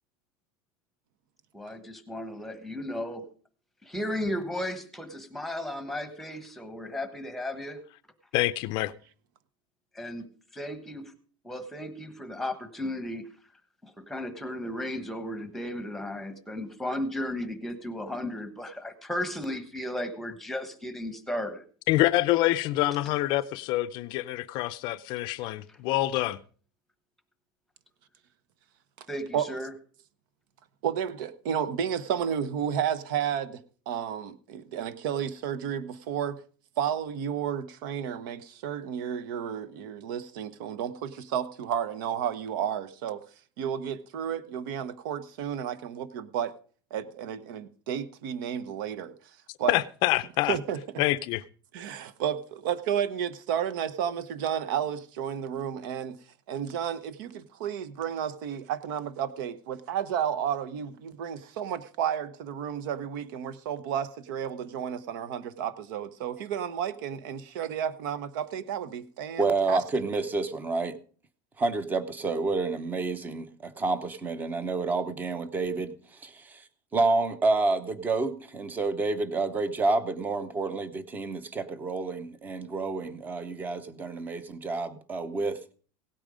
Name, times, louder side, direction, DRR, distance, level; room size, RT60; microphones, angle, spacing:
voice 1, 1.5-3.3 3.8-7.8 9.9-10.2 10.6-11.0 11.4-13.3 13.8-21.6 25.7-25.8 29.1-29.7, left 1 dB, ahead, 1.2 m, -35 dB
voice 2, 8.3-8.9 21.9-26.4 49.7-50.6 51.0-51.4, left 16 dB, 40° left, 0.5 m, -26 dB
voice 3, 30.8-33.6 33.9-36.4 36.8-43.2 43.6-46.5 46.9-49.1 49.6-49.7 50.5-51.0 51.7-56.2 56.5-69.8, right 9 dB, 65° right, 1.0 m, -32 dB
voice 4, 69.4-71.0 71.6-76.7 76.9-85.7, right 3 dB, 15° right, 0.8 m, -29 dB
17.0 x 8.9 x 5.1 m
supercardioid pair, 170°, 12 cm